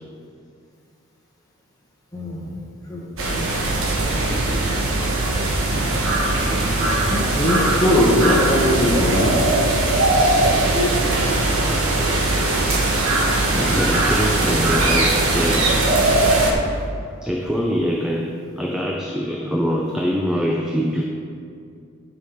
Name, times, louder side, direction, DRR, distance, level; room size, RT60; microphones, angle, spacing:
voice 1, 2.1-2.5 2.9-4.3 7.1-9.4, left 1 dB, 15° left, -5 dB, 1.1 m, -21 dB
sound 1, 3.2-16.5, right 2 dB, 70° right, 1.1 m, -20 dB
voice 2, 13.3-15.8 17.2-21.0, equal, 5° right, -1 dB, 0.4 m, -24 dB
12.0 x 5.4 x 3.5 m, 2.4 s
head